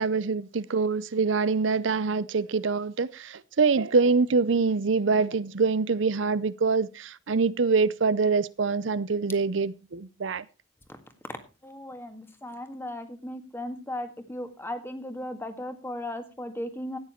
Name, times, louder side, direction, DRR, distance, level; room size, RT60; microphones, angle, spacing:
voice 1, 0.0-10.5, right 4 dB, 70° right, 0.6 m, -25 dB
voice 2, 11.6-17.0, left 1 dB, 10° left, 1.7 m, -36 dB
14.0 x 9.6 x 4.4 m
head